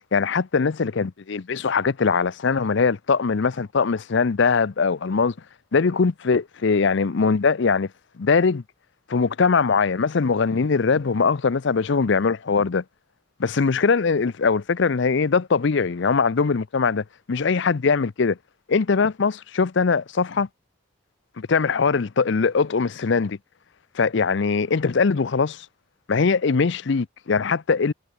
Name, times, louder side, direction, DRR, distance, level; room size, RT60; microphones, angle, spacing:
voice 1, 0.1-5.3 5.7-7.9 8.2-8.6 9.1-12.8 13.4-18.4 18.7-20.5 21.4-23.4 23.9-25.7 26.1-27.9, left 5 dB, 60° left, 0.5 m, -21 dB
head